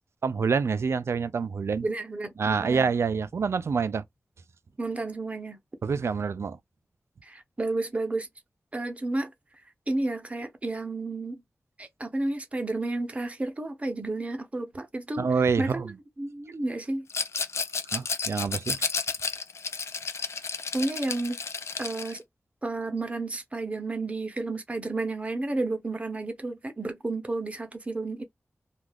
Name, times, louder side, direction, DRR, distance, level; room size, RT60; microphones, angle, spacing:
voice 1, 0.2-1.9 2.4-4.0 5.8-6.6 15.2-15.9 17.9-18.8, right 5 dB, 70° right, 0.3 m, -26 dB
voice 2, 1.8-2.9 4.8-5.6 7.2-8.3 8.7-9.3 9.9-11.4 11.8-15.3 15.6-15.8 16.2-17.1 20.7-21.4 21.8-22.2 22.6-28.2, right 2 dB, 30° right, 0.7 m, -31 dB
Rattle, 17.1-22.2, left 5 dB, 75° left, 0.4 m, -32 dB
2.3 x 2.2 x 3.3 m
wide cardioid pair, 100°, 5 cm